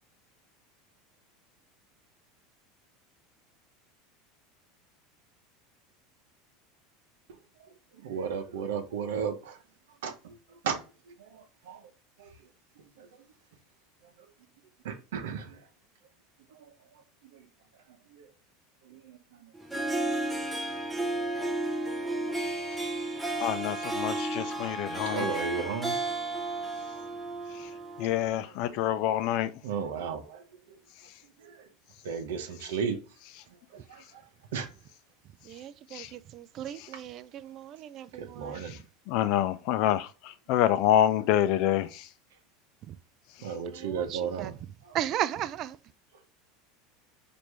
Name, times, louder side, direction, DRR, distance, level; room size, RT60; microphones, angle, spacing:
voice 1, 7.3-9.6 10.0-11.9 12.2-12.4 12.8-13.2 14.0-14.3 14.8-15.7 16.5-17.5 17.9-18.3 18.8-19.5 22.1-22.3 22.5-22.6 24.0-24.7 25.0-26.0 26.5-27.1 28.4-29.0 29.6-30.8 31.4-31.7 32.0-33.0 33.5-34.7 38.1-38.8 43.4-44.6 44.8-45.0, right 6 dB, 85° right, 0.7 m, -37 dB
Harp, 19.5-28.3, right 2 dB, 10° right, 0.8 m, -33 dB
voice 2, 23.4-25.3 28.0-29.5 35.9-36.1 39.1-40.1 40.5-42.0, left 11 dB, 60° left, 0.5 m, -26 dB
voice 3, 35.4-38.6 42.9-43.0 43.7-44.5 44.9-45.8, right 11 dB, 45° right, 0.3 m, -36 dB
4.5 x 2.6 x 3.2 m
supercardioid pair, 115°, 0 cm